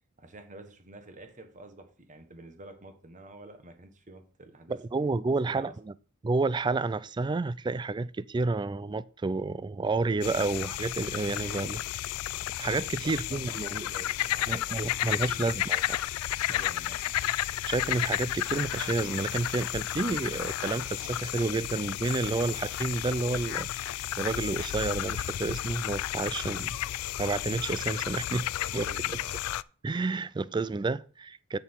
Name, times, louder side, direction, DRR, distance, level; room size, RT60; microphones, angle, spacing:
voice 1, 0.2-4.8 5.4-5.7 13.0-15.5 16.4-17.1 28.6-29.3, right 2 dB, 35° right, 1.4 m, -49 dB
voice 2, 4.7-5.9 6.2-12.1 12.6-13.9 14.5-15.8 17.7-26.8 27.2-28.5 28.7-28.9 29.8-31.6, right 3 dB, 20° right, 0.3 m, -30 dB
sound 1, 10.2-29.6, left 13 dB, 75° left, 0.3 m, -32 dB
7.8 x 7.0 x 4.6 m
head